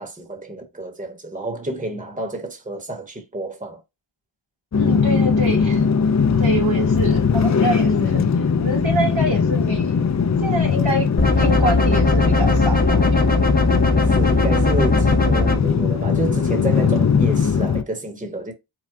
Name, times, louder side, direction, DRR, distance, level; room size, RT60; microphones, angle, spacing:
voice 1, 0.0-3.8 13.9-18.5, right 1 dB, 15° right, 1.0 m, -29 dB
sound 1, 4.7-17.8, left 6 dB, 40° left, 0.4 m, -20 dB
voice 2, 4.8-5.9 6.4-10.0 10.4-11.1 11.4-13.5, right 1 dB, 90° right, 2.4 m, -26 dB
sound 2, 11.2-15.6, left 2 dB, 20° left, 0.9 m, -19 dB
4.6 x 2.2 x 3.6 m
wide cardioid pair, 45°, 46 cm